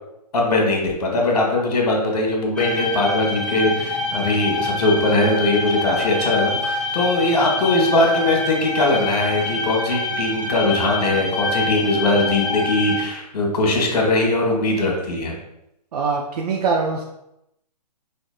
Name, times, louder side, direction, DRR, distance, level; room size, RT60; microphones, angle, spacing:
voice 1, 0.3-15.4, left 2 dB, 65° left, 0 dB, 1.3 m, -20 dB
sound 1, 2.6-13.0, left 3 dB, 5° left, 0.6 m, -26 dB
voice 2, 15.9-17.0, right 4 dB, 65° right, 1 dB, 0.5 m, -22 dB
5.3 x 2.6 x 2.3 m, 0.84 s
hypercardioid pair, 135°, 21 cm